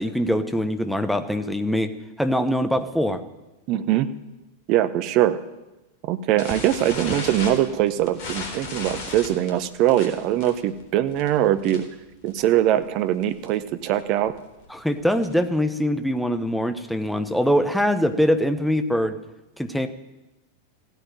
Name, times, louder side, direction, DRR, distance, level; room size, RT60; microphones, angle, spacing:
voice 1, 0.0-3.2 14.7-19.2 19.6-19.9, equal, ahead, 9 dB, 1.0 m, -23 dB
voice 2, 3.7-4.1 4.7-5.4 6.1-11.8 12.2-14.3, right 12 dB, 40° right, 12 dB, 0.9 m, -22 dB
sound 1, 6.4-12.0 12.3-12.6 12.8-12.9 13.2-13.5 14.0-15.5, left 3 dB, 45° left, 3.7 m, -35 dB
15.5 x 9.2 x 9.0 m, 1.0 s
figure-of-eight pair, 90°, 0 cm